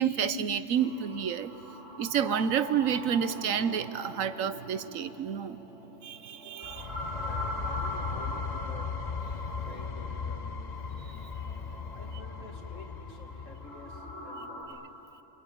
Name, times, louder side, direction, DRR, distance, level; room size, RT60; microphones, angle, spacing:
voice 1, 0.0-1.5 2.0-5.6 6.0-6.9, right 8 dB, 85° right, 13 dB, 1.3 m, -29 dB
sound 1, 0.7-14.6, equal, 10° left, 7.3 m, -43 dB
sound 2, 6.6-14.3, left 5 dB, 35° left, 0.9 m, -37 dB
voice 2, 7.1-9.0 9.6-10.5 11.9-14.9, left 2 dB, 75° left, 3 dB, 2.7 m, -49 dB
29.5 x 22.0 x 9.3 m, 2.8 s
omnidirectional pair, 1.3 m